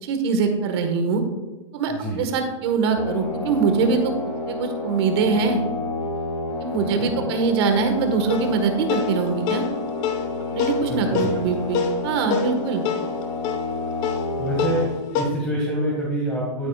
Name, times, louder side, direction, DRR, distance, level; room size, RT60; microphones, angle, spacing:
voice 1, 0.0-1.2 1.7-4.1 4.5-5.6 6.6-9.6 10.5-12.8, right 5 dB, 55° right, 5 dB, 1.5 m, -23 dB
voice 2, 1.9-2.3 6.8-7.3 10.8-11.4 14.4-16.7, right 1 dB, 10° left, -4 dB, 1.9 m, -27 dB
sound 1, 3.0-14.9, left 3 dB, 80° left, 1.6 m, -30 dB
sound 2, 8.3-15.3, left 6 dB, 40° left, 1.1 m, -28 dB
13.0 x 8.9 x 2.4 m, 1.1 s
hypercardioid pair, 145°, 16 cm